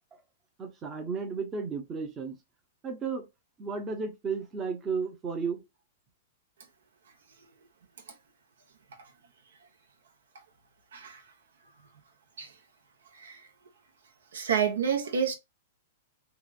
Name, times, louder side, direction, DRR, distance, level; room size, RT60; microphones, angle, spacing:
voice 1, 0.6-2.4 2.8-3.3 3.6-5.6, right 5 dB, 20° right, 0.6 m, -33 dB
voice 2, 14.3-15.3, right 7 dB, 85° right, 0.9 m, -28 dB
2.9 x 2.4 x 2.4 m
hypercardioid pair, 150°, 0 cm